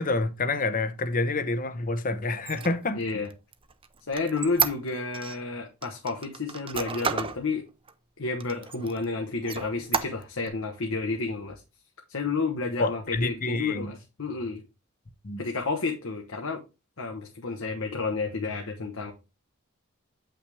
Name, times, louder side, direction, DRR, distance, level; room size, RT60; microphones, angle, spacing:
voice 1, 0.0-3.0 12.8-13.9 15.2-15.4, left 3 dB, 40° left, 0.8 m, -28 dB
Squeak, 2.3-5.4 5.8-7.4 7.9-8.0 8.4-9.0 9.4-10.5, right 6 dB, 25° right, 0.6 m, -31 dB
voice 2, 2.9-3.3 4.1-7.6 8.2-11.6 12.1-14.6 15.4-16.6 17.0-19.1, left 3 dB, 70° left, 1.1 m, -31 dB
8.4 x 5.8 x 3.4 m
head